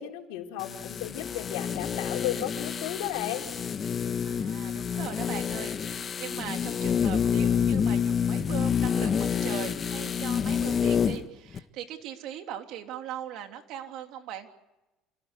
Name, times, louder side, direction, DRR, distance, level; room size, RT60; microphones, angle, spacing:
voice 1, 0.0-3.5, left 13 dB, 85° left, 2 dB, 4.0 m, -34 dB
sound 1, 0.6-11.3 11.5-11.6, left 7 dB, 35° left, 1.5 m, -28 dB
voice 2, 4.2-14.5, right 10 dB, 65° right, 5 dB, 3.2 m, -40 dB
28.5 x 18.0 x 8.3 m, 1.0 s
supercardioid pair, 110°, 0 cm